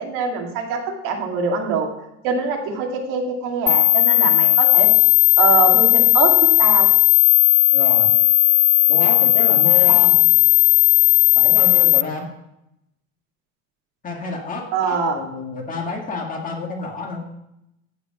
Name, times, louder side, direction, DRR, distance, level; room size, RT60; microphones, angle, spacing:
voice 1, 0.0-1.9 2.2-4.9 5.4-6.9 14.7-15.2, right 5 dB, 70° right, 1 dB, 2.3 m, -23 dB
sound 1, 3.7-12.0, left 17 dB, 80° left, 0.6 m, -15 dB
voice 2, 7.7-8.1 8.9-10.2 11.4-12.3 14.0-17.3, left 3 dB, 25° left, 1 dB, 1.8 m, -29 dB
14.5 x 5.1 x 5.9 m, 0.86 s
cardioid pair, 170°, 34 cm